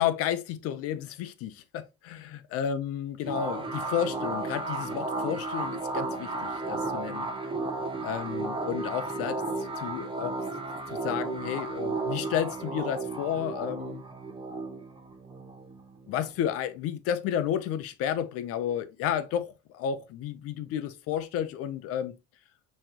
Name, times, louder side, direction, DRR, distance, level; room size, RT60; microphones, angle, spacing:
voice 1, 0.0-7.3 8.0-10.4 10.9-14.0 16.1-22.1, left 9 dB, 50° left, 0.7 m, -32 dB
sound 1, 3.3-16.5, right 3 dB, 20° right, 1.0 m, -34 dB
5.6 x 3.2 x 2.9 m
supercardioid pair, 125°, 29 cm